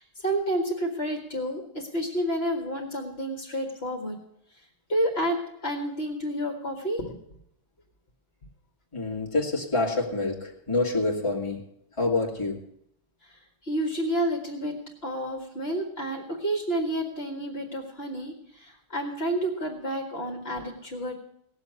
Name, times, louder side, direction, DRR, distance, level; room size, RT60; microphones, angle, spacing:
voice 1, 0.0-4.2 4.9-7.1 13.2-21.1, right 1 dB, 55° left, 1 dB, 2.0 m, -30 dB
voice 2, 8.9-11.6 12.0-12.6, left 3 dB, 25° left, -2 dB, 2.3 m, -27 dB
18.0 x 7.1 x 8.1 m, 0.74 s
omnidirectional pair, 1.3 m